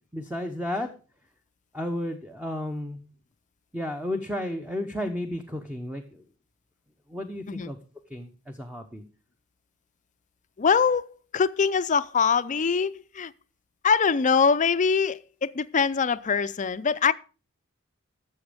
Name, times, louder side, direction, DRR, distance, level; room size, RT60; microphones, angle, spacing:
voice 1, 0.1-0.9 1.7-3.0 3.7-6.2 7.1-7.8 8.1-9.0, left 1 dB, 5° right, 0.9 m, -32 dB
voice 2, 10.6-13.3 13.8-17.1, left 5 dB, 35° left, 0.5 m, -23 dB
13.0 x 7.1 x 5.1 m
head